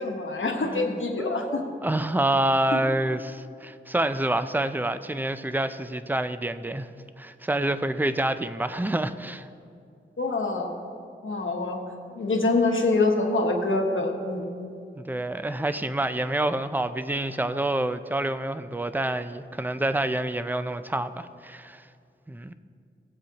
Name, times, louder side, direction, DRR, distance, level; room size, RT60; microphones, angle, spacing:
voice 1, 0.0-1.6 2.7-2.8 10.2-10.7 11.2-11.9 12.1-14.5, left 3 dB, 75° left, 2 dB, 1.1 m, -25 dB
voice 2, 0.6-6.9 7.2-9.5 15.0-21.8 22.3-22.5, right 1 dB, 10° right, 11 dB, 0.4 m, -27 dB
17.0 x 7.8 x 2.9 m, 2.4 s
wide cardioid pair, 65°, 20 cm